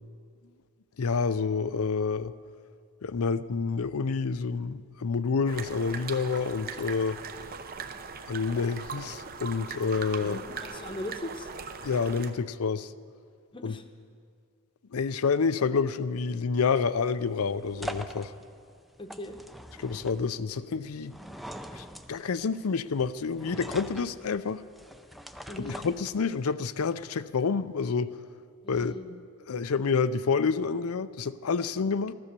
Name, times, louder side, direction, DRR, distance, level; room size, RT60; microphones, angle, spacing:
voice 1, 1.0-2.3 3.0-7.2 8.3-10.4 11.8-12.9 13.6-13.8 14.9-18.3 19.8-21.1 21.7-24.6 25.6-28.1 28.7-29.0 29.5-32.1, left 5 dB, 75° left, 0.5 m, -28 dB
sound 1, 5.5-12.3, right 5 dB, 40° right, 0.7 m, -40 dB
voice 2, 10.2-11.5 13.5-13.8 19.0-19.4 25.5-25.8 28.6-29.1, left 1 dB, 20° left, 0.9 m, -39 dB
sound 2, 16.7-26.5, equal, ahead, 0.4 m, -44 dB
15.5 x 13.0 x 6.8 m
head